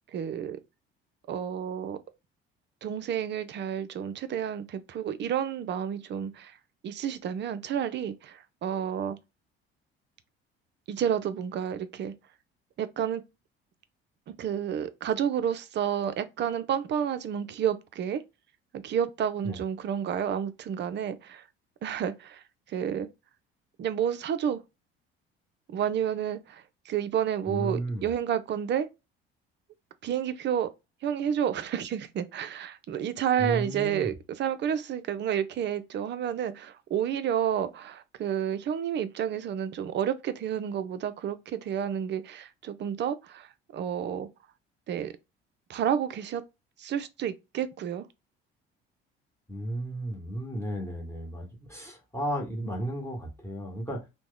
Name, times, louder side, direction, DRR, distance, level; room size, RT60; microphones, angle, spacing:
voice 1, 0.1-0.6 1.3-2.0 2.8-6.6 6.8-9.2 10.9-12.1 12.8-13.2 14.3-18.2 18.7-21.4 21.8-23.1 23.8-24.6 25.7-28.9 30.0-30.7 31.0-44.3 44.9-45.1 45.7-46.4 46.8-48.1, right 9 dB, 35° right, 0.5 m, -30 dB
voice 2, 27.5-28.1 33.4-34.1 49.5-54.0, right 1 dB, 10° left, 1.2 m, -34 dB
2.9 x 2.1 x 3.7 m
figure-of-eight pair, 55°, 31 cm